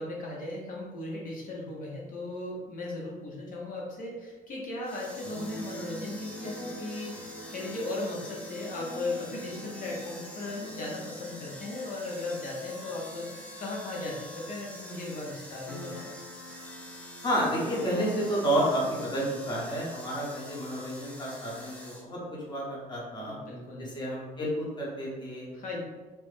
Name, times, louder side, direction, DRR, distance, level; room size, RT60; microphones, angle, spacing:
voice 1, 0.0-16.1 23.2-23.9 25.5-25.8, left 2 dB, 55° left, -2 dB, 0.7 m, -37 dB
sound 1, 4.8-22.0, left 1 dB, 5° left, 0.5 m, -46 dB
Keyboard (musical), 5.2-14.8 15.0-15.1 15.3-19.8, equal, 75° left, 1.3 m, -44 dB
voice 2, 17.2-22.2 22.5-23.4 23.8-25.5, right 1 dB, 25° left, -5 dB, 1.0 m, -30 dB
3.0 x 2.0 x 3.2 m, 1.2 s
cardioid pair, 110°, 17 cm